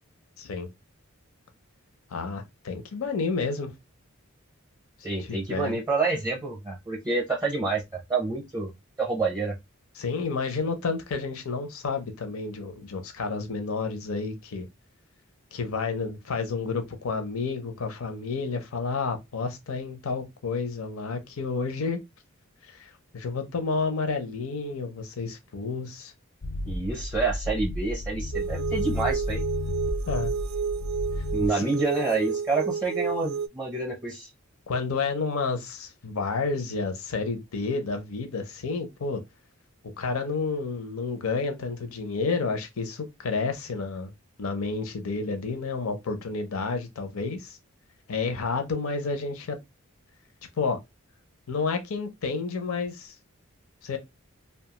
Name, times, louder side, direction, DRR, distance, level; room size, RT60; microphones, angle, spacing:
voice 1, 0.4-0.7 2.1-3.7 5.3-5.8 10.0-14.7 15.5-22.0 22.7-26.1 30.1-30.3 31.5-31.7 34.7-39.2 40.0-44.1 44.4-47.6 48.1-49.6 50.6-50.8 51.5-53.1 53.8-54.0, left 4 dB, 80° left, 0.6 m, -30 dB
voice 2, 5.0-8.7 9.0-9.5 26.7-29.4 31.3-34.3, right 3 dB, 15° right, 0.5 m, -28 dB
sound 1, 26.4-31.5, left 1 dB, 40° left, 0.3 m, -32 dB
sound 2, 28.3-33.5, right 6 dB, 80° right, 0.3 m, -31 dB
2.6 x 2.3 x 2.8 m
head